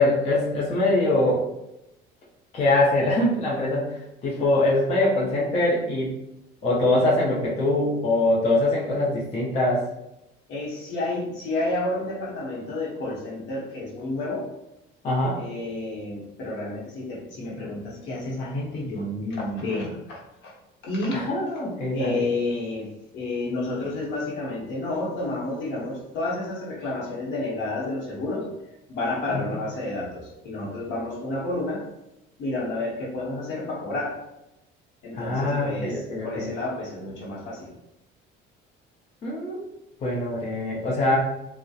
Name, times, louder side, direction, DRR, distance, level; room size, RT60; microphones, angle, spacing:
voice 1, 0.0-1.4 2.5-6.1 6.6-9.8 15.0-15.4 21.1-22.2 29.3-29.5 35.1-36.5 39.2-39.6 40.0-41.2, left 2 dB, 30° left, -5 dB, 0.5 m, -23 dB
voice 2, 10.5-14.5 15.3-20.5 20.8-21.2 21.9-22.9 23.1-31.8 32.4-34.2 35.0-37.7, left 2 dB, 65° left, -3 dB, 0.8 m, -30 dB
2.7 x 2.0 x 2.3 m, 0.90 s
cardioid pair, 145°, 20 cm